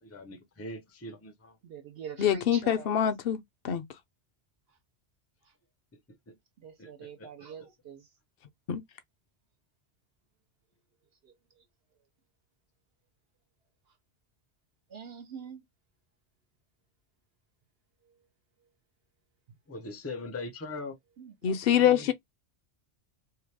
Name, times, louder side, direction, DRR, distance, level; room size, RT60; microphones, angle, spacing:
voice 1, 0.0-1.6 6.3-6.4 6.8-7.3 19.7-21.0 21.8-22.1, left 2 dB, 20° left, 0.4 m, -41 dB
voice 2, 1.6-3.1 5.4-5.5 6.6-8.1 11.2-11.6 14.9-15.6 19.5-19.6 21.2-21.9, right 6 dB, 70° right, 0.8 m, -45 dB
voice 3, 2.2-3.8 8.7-8.8 21.4-22.1, left 9 dB, 65° left, 0.7 m, -25 dB
2.8 x 2.1 x 3.2 m
omnidirectional pair, 1.1 m